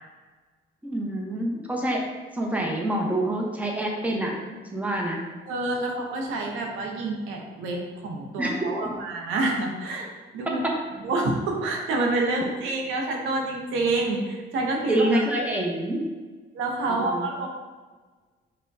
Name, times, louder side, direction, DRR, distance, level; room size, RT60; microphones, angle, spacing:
voice 1, 0.8-2.0 2.3-5.2 8.4-8.5 14.9-16.0 16.9-17.2, right 1 dB, 5° right, -1 dB, 0.7 m, -26 dB
voice 2, 5.5-10.6 10.9-15.2 16.5-17.5, right 2 dB, 90° right, 0 dB, 0.7 m, -28 dB
5.4 x 2.2 x 2.6 m, 1.4 s
cardioid pair, 90°, 20 cm